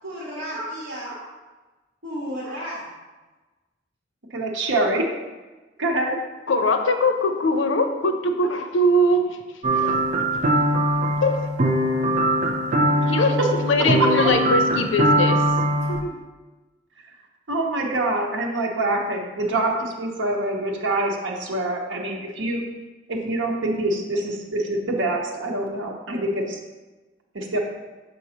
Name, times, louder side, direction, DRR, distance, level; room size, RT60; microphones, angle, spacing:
voice 1, 0.0-1.3 2.0-2.9, equal, 60° right, -7 dB, 1.6 m, -33 dB
voice 2, 4.3-5.0 5.8-6.2 17.5-22.6 23.1-26.6 27.3-27.6, right 2 dB, 85° right, -1 dB, 0.9 m, -25 dB
voice 3, 6.5-9.3 9.7-10.0 11.2-11.4 13.1-15.4 15.7-16.2, left 1 dB, 90° left, 6 dB, 0.6 m, -22 dB
sound 1, 9.6-16.0, right 1 dB, 40° right, 0.5 m, -21 dB
6.2 x 5.3 x 2.9 m, 1.2 s
head